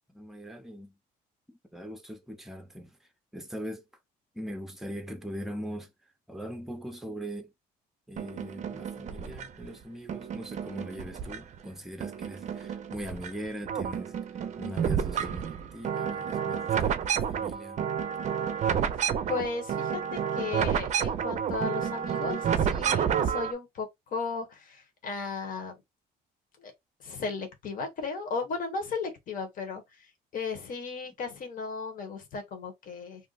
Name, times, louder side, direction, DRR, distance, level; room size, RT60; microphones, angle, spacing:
voice 1, 0.1-0.9 1.5-3.0 3.3-3.8 4.3-5.9 6.3-7.5 8.1-14.1 14.6-17.8, equal, ahead, 0.6 m, -41 dB
sound 1, 8.2-9.7 10.1-11.7 12.0-13.3 13.6-23.5, right 8 dB, 45° right, 0.5 m, -30 dB
voice 2, 19.0-25.8 26.6-26.7 27.0-30.1 30.3-33.3, left 4 dB, 55° left, 1.2 m, -35 dB
2.6 x 2.1 x 3.9 m
cardioid pair, 110°, 17 cm